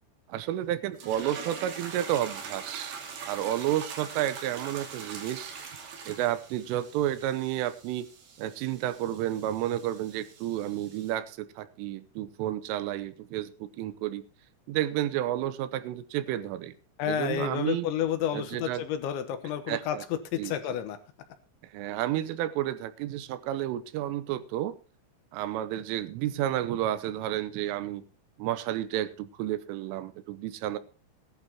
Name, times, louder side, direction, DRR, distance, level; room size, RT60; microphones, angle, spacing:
voice 1, 0.3-3.0 3.3-5.5 6.1-8.1 8.4-14.2 14.7-16.7 17.0-17.9 18.3-18.8 19.7-20.0 20.4-20.8 21.6-24.8 25.3-28.0 28.4-30.8, right 12 dB, 90° right, 14 dB, 3.4 m, -31 dB
sound 1, 0.9-11.1, right 6 dB, 55° right, 3.9 m, -43 dB
voice 2, 17.0-21.0, left 9 dB, 75° left, 9 dB, 3.3 m, -30 dB
18.5 x 11.0 x 2.9 m, 0.35 s
omnidirectional pair, 5.7 m